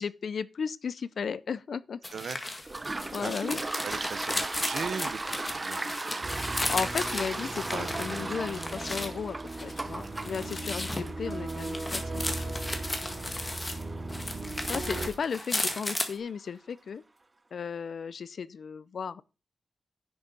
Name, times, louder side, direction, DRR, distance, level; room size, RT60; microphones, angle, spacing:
voice 1, 0.0-2.0 3.1-3.6 6.6-12.6 14.7-17.0 17.5-19.2, left 6 dB, 65° left, 0.5 m, -35 dB
sound 1, 2.0-9.1 9.5-13.8 14.1-16.1, left 2 dB, 20° left, 1.7 m, -35 dB
Toilet flush, 2.6-16.0, right 2 dB, 25° right, 0.6 m, -38 dB
voice 2, 2.9-3.3 3.8-6.5 7.7-7.9 9.9-10.1 10.5-10.6 13.0-13.5 15.0-15.1, right 6 dB, 75° right, 0.7 m, -40 dB
sound 2, 6.2-15.1, right 2 dB, 45° right, 2.1 m, -38 dB
10.5 x 6.3 x 5.3 m
wide cardioid pair, 140°, 0 cm